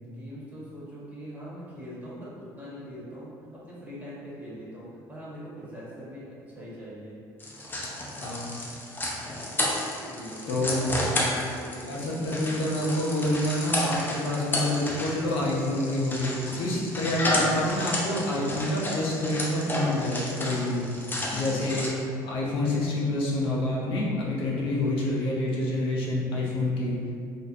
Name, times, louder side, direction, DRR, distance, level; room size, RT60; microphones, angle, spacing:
voice 1, 0.0-7.2 10.0-12.6 21.4-21.7 26.5-26.6, equal, 15° right, -9 dB, 1.1 m, -43 dB
sound 1, 7.4-21.9, left 1 dB, 20° left, 0.5 m, -31 dB
voice 2, 8.2-8.6 10.5-10.9 11.9-20.8 21.3-21.9 22.2-27.0, left 1 dB, 65° left, -4 dB, 0.6 m, -27 dB
2.4 x 2.1 x 2.6 m, 2.3 s
supercardioid pair, 70°, 10 cm